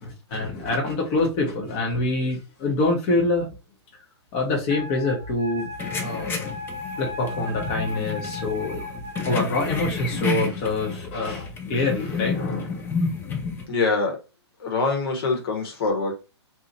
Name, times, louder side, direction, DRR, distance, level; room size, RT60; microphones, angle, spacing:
voice 1, 0.0-3.5 4.3-5.7 6.0-6.5 7.0-8.8 9.2-12.9, left 2 dB, 35° left, 1.0 m, -25 dB
Wind instrument woodwind instrument, 4.7-9.4, left 2 dB, 30° right, 0.6 m, -36 dB
sound 1, 5.8-13.7, left 5 dB, 15° left, 0.5 m, -30 dB
voice 2, 13.7-14.1 14.6-16.1, left 3 dB, 55° left, 1.3 m, -24 dB
2.9 x 2.4 x 4.0 m
hypercardioid pair, 125°, 15 cm